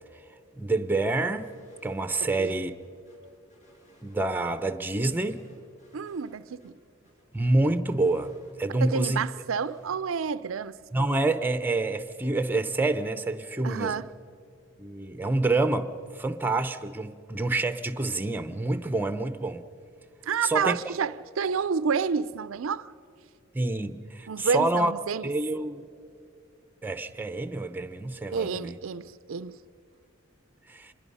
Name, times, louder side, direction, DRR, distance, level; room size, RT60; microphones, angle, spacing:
voice 1, 0.6-1.5 1.8-2.7 4.0-5.4 7.3-8.3 8.6-9.3 10.9-14.0 14.8-19.6 20.4-20.8 23.5-24.9 25.2-25.8 26.8-28.8 30.7-30.9, right 2 dB, 10° right, 0.7 m, -27 dB
sound 1, 1.4-2.0 2.2-2.3 2.7-4.5 4.9-6.3 6.6-6.7 7.0-8.9 9.2-10.0, equal, 35° left, 6.2 m, -61 dB
voice 2, 5.9-6.7 8.7-10.8 13.6-14.1 20.3-22.9 24.3-25.3 28.3-29.6, right 6 dB, 85° right, 0.5 m, -29 dB
26.0 x 21.5 x 5.5 m
head